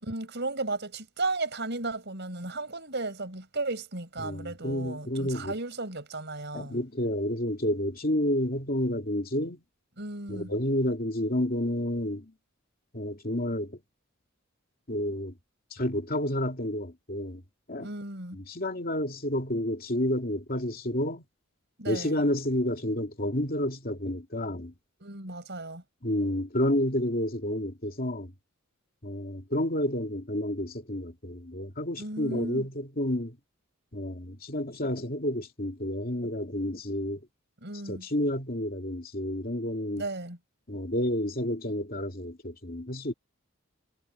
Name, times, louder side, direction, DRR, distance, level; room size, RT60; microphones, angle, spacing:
voice 1, 0.0-6.8 10.0-10.5 17.8-18.4 21.8-22.1 25.0-25.8 32.0-32.7 37.6-38.1 39.9-40.4, right 2 dB, 55° right, 5.6 m, -35 dB
voice 2, 4.2-5.5 6.5-9.6 10.3-12.3 12.9-13.8 14.9-15.3 15.7-17.4 17.7-17.9 18.3-21.2 21.9-24.7 26.0-28.3 29.0-33.4 33.9-37.3 37.9-40.0 40.7-43.1, left 1 dB, 45° left, 2.7 m, -30 dB
head